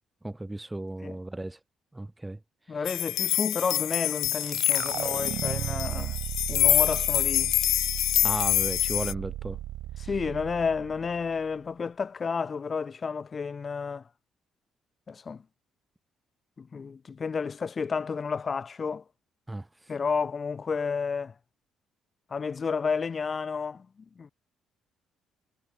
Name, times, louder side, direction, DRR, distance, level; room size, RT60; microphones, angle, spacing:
voice 1, 0.2-1.6 1.9-2.4 8.2-9.6 19.5-19.7, right 2 dB, 10° right, 0.7 m, -35 dB
voice 2, 2.7-6.2 6.5-7.5 10.0-14.0 15.1-15.4 16.6-19.0 19.9-21.3 22.3-23.9 24.2-24.3, left 5 dB, 35° left, 1.1 m, -31 dB
sound 1, 2.9-9.1, left 14 dB, 60° left, 0.3 m, -26 dB
sound 2, 4.2-11.5, right 14 dB, 60° right, 1.6 m, -36 dB
figure-of-eight pair, 45°, 0 cm